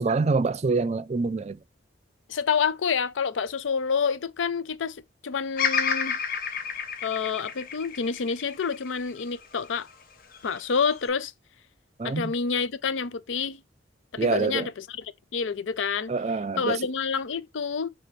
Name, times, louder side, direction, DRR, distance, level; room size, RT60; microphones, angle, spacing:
voice 1, 0.0-1.6 12.0-12.3 14.2-14.7 16.1-16.8, right 4 dB, 35° right, 0.4 m, -26 dB
voice 2, 2.3-6.2 7.0-9.9 10.4-11.3 12.0-13.6 14.1-15.1 15.3-16.1 16.6-17.9, left 6 dB, 90° left, 0.5 m, -28 dB
Bird vocalization bird call bird song, 5.6-9.8 10.3-11.1, left 6 dB, 50° left, 0.8 m, -30 dB
5.1 x 3.5 x 2.6 m
head